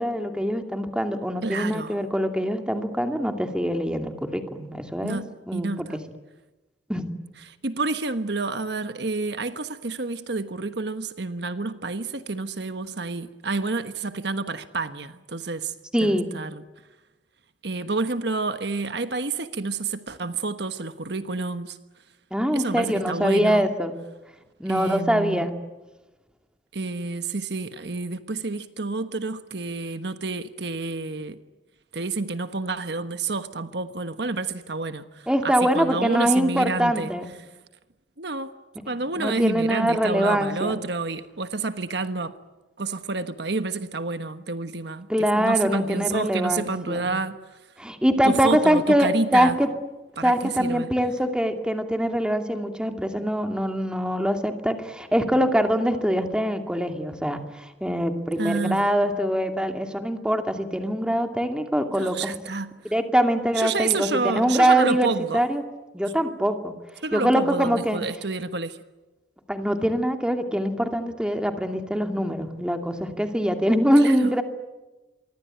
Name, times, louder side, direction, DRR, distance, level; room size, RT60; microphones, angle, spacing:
voice 1, 0.0-5.2 5.5-5.9 6.9-7.1 15.9-16.3 22.3-23.9 24.6-25.5 35.3-37.3 39.2-40.8 45.1-47.1 47.8-49.7 50.2-62.4 62.8-65.6 65.9-66.7 67.1-68.0 69.5-74.4, equal, 5° right, 2.5 m, -23 dB
voice 2, 1.4-2.0 5.0-5.3 5.5-6.0 7.4-15.7 16.0-16.6 17.6-21.8 22.5-23.7 24.7-25.5 26.7-31.4 31.9-37.1 38.2-38.5 38.9-42.3 42.8-47.4 48.3-49.6 50.2-50.9 58.4-58.8 62.0-62.7 63.5-65.4 67.0-68.8 74.0-74.3, right 3 dB, 60° right, 1.3 m, -29 dB
27.0 x 24.0 x 9.1 m
head